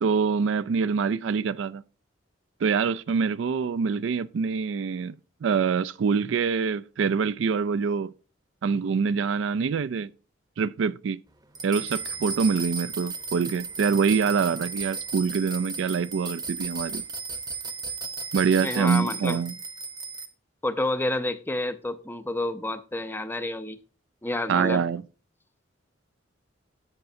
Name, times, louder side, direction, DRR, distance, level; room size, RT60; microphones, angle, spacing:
voice 1, 0.0-1.8 2.6-5.2 5.4-8.1 8.6-10.1 10.6-11.2 11.6-17.0 18.3-19.5 24.5-25.0, right 5 dB, 70° right, 0.4 m, -25 dB
sound 1, 11.6-20.3, right 4 dB, 20° right, 0.8 m, -35 dB
voice 2, 18.6-19.4 20.6-23.8 24.2-24.9, left 1 dB, 10° left, 0.5 m, -29 dB
10.5 x 7.9 x 2.6 m
head